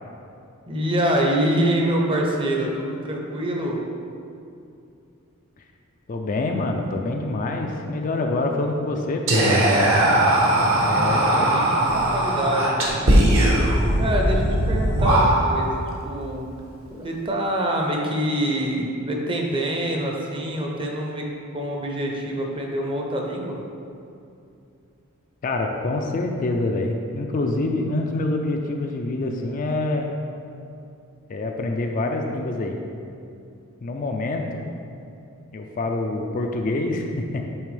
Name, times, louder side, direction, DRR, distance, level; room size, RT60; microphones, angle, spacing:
voice 1, 0.7-3.8 10.9-13.1 14.0-16.5 16.9-21.2 21.5-23.6, right 1 dB, 25° right, 0 dB, 0.6 m, -25 dB
voice 2, 6.1-9.5 10.8-11.6 25.4-30.1 31.3-32.8 33.8-34.7 35.5-37.6, left 2 dB, 35° left, 3 dB, 0.4 m, -26 dB
Whispering, 9.3-15.7, right 1 dB, 60° right, 1.0 m, -19 dB
8.6 x 3.4 x 3.3 m, 2.6 s
head